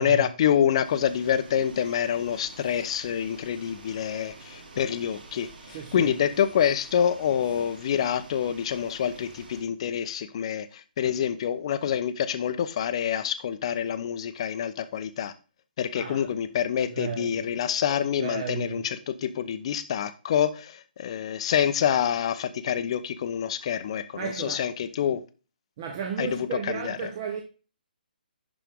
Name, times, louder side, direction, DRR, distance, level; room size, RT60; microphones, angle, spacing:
voice 1, 0.0-15.3 15.8-25.2 26.2-27.1, left 9 dB, 35° left, 0.8 m, -27 dB
sound 1, 0.8-9.6, right 3 dB, 55° right, 4.7 m, -48 dB
voice 2, 5.7-6.1 15.9-16.3 17.0-17.5 18.2-18.8 24.2-24.7 25.8-27.4, right 6 dB, 30° right, 1.0 m, -34 dB
11.5 x 4.6 x 3.7 m
hypercardioid pair, 165°, 5 cm